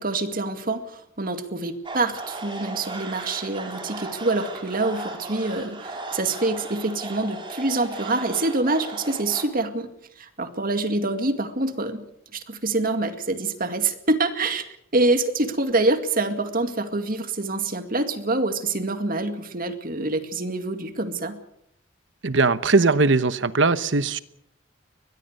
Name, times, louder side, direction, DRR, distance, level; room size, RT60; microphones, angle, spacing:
voice 1, 0.0-9.9 10.2-12.0 12.3-21.4, right 2 dB, 45° right, 2.1 m, -26 dB
sound 1, 1.8-9.4, right 2 dB, 25° right, 4.6 m, -36 dB
voice 2, 22.2-24.2, right 3 dB, 70° right, 1.1 m, -20 dB
23.0 x 20.0 x 6.7 m
head